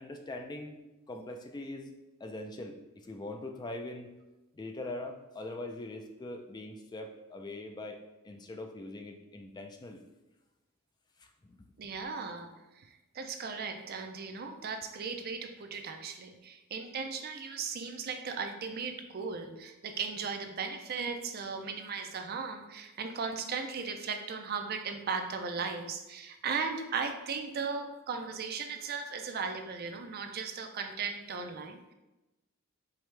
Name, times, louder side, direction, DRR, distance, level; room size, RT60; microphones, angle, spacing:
voice 1, 0.0-1.9 2.2-4.1 4.5-8.0 8.2-10.0 11.2-11.6, left 2 dB, 20° left, 4 dB, 0.3 m, -42 dB
voice 2, 11.8-12.9 13.1-31.9, right 5 dB, 45° right, 5 dB, 0.5 m, -37 dB
4.8 x 3.4 x 3.2 m, 1.0 s
head